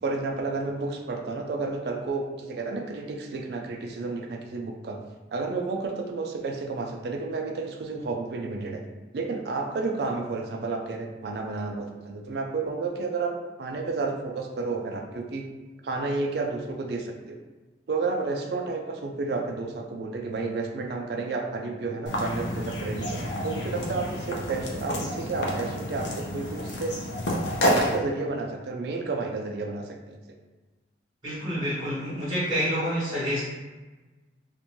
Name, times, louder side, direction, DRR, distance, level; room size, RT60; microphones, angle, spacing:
voice 1, 0.0-8.8 9.1-15.5 15.8-17.4 17.9-27.0 27.6-30.2, right 3 dB, 65° right, 2 dB, 0.4 m, -31 dB
sound 1, 22.1-28.0, equal, 85° left, 0.5 m, -29 dB
voice 2, 31.2-33.4, equal, 25° right, -10 dB, 0.8 m, -28 dB
2.5 x 2.2 x 3.0 m, 1.2 s
head